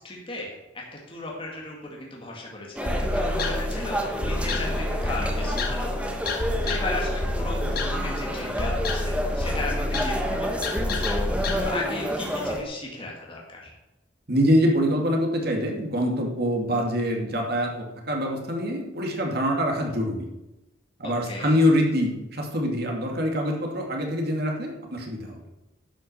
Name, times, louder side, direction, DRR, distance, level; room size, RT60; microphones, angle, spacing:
voice 1, 0.0-13.7 21.0-21.6, left 2 dB, 30° left, -2 dB, 2.1 m, -36 dB
sound 1, 2.7-12.6, equal, 5° right, 1.2 m, -30 dB
sound 2, 2.9-11.6, left 1 dB, 55° left, 1.5 m, -29 dB
voice 2, 14.3-20.3 21.0-25.4, equal, 60° right, 1 dB, 2.3 m, -25 dB
11.0 x 6.3 x 6.7 m, 0.99 s
head